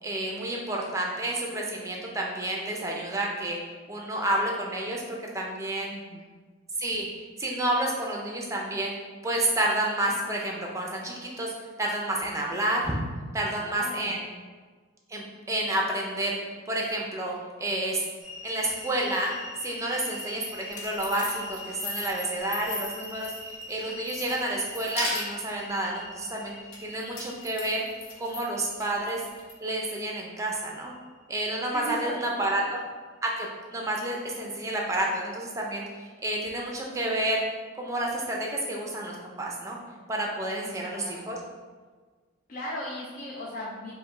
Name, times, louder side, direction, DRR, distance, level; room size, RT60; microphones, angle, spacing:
voice 1, 0.0-3.6 3.9-5.9 6.8-8.9 9.2-11.5 11.8-12.9 13.3-14.2 15.1-16.4 16.7-18.0 18.4-19.3 19.6-23.3 23.7-26.5 26.8-27.8 28.2-29.2 29.6-30.9 31.3-32.8 33.2-37.4 37.7-39.8 40.1-41.4, right 1 dB, 15° right, -1 dB, 0.5 m, -30 dB
voice 2, 5.9-6.3 13.4-14.2 31.7-32.6 40.6-41.5 42.5-43.9, equal, 40° left, -4 dB, 0.5 m, -38 dB
sound 1, 18.2-32.3, left 2 dB, 65° left, 1.2 m, -44 dB
sound 2, 20.5-23.7 24.1-25.6 26.7-28.4 28.8-29.5, left 2 dB, 90° left, 0.8 m, -37 dB
4.9 x 2.2 x 3.7 m, 1.5 s
head